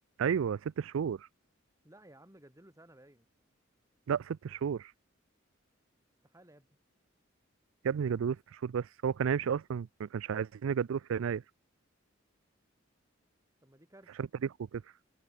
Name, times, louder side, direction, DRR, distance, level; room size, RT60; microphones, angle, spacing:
voice 1, 0.2-1.3 4.1-4.9 7.8-11.4 14.2-14.8, right 7 dB, 80° right, 0.4 m, -32 dB
voice 2, 1.8-3.3 6.2-6.8 13.6-14.2, right 1 dB, 15° right, 5.1 m, -57 dB
head